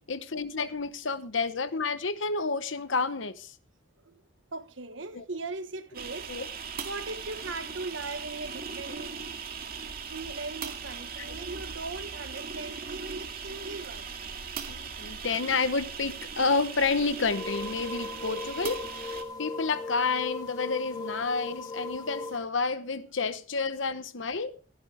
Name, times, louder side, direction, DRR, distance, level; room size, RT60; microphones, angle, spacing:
voice 1, 0.1-3.5 5.1-5.2 6.3-6.5 11.2-11.4 14.7-24.5, left 4 dB, 75° left, 1.0 m, -30 dB
voice 2, 4.5-6.3 6.8-9.2 10.1-14.1, right 3 dB, 75° right, 1.4 m, -39 dB
sound 1, 5.9-19.2, right 6 dB, 50° right, 2.1 m, -39 dB
sound 2, 17.3-22.4, left 3 dB, 20° left, 3.3 m, -38 dB
16.5 x 12.0 x 3.4 m
head